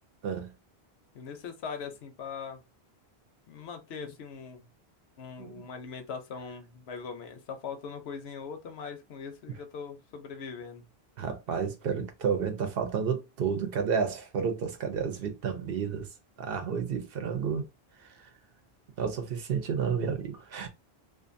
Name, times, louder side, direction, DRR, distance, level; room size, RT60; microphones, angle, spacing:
voice 1, 1.1-2.6 3.5-4.7 5.2-10.9, left 6 dB, 80° left, 0.9 m, -41 dB
voice 2, 11.2-16.1 16.4-17.7 18.0-18.3 19.0-20.7, right 6 dB, 65° right, 0.9 m, -31 dB
2.5 x 2.5 x 2.5 m
omnidirectional pair, 1.1 m